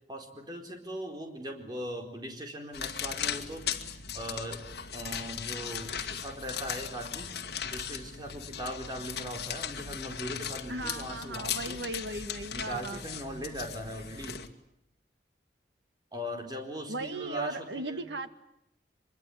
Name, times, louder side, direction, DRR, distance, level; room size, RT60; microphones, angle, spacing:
voice 1, 0.1-3.7 4.1-4.6 4.9-7.3 7.6-11.8 12.5-14.4 16.1-18.0, equal, 25° right, 3 dB, 4.3 m, -39 dB
sound 1, 2.7-14.5, left 8 dB, 70° left, 2.0 m, -38 dB
voice 2, 10.7-13.0 16.9-18.3, right 2 dB, 90° right, 9 dB, 2.0 m, -37 dB
24.5 x 23.0 x 10.0 m, 0.80 s
head